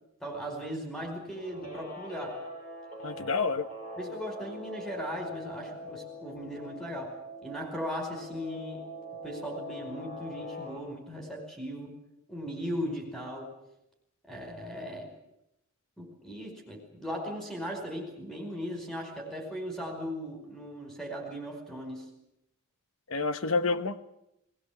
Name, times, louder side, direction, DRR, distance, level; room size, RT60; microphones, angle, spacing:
voice 1, 0.2-2.4 3.1-3.2 4.0-8.8 9.2-12.0 12.3-13.5 14.3-15.1 16.0-22.1, equal, 5° left, 2 dB, 5.1 m, -38 dB
Guitar, 1.3-10.8, left 1 dB, 40° left, 6.2 m, -43 dB
voice 2, 3.0-3.7 23.1-24.0, left 4 dB, 70° left, 11 dB, 1.1 m, -28 dB
20.0 x 20.0 x 8.6 m, 0.84 s
head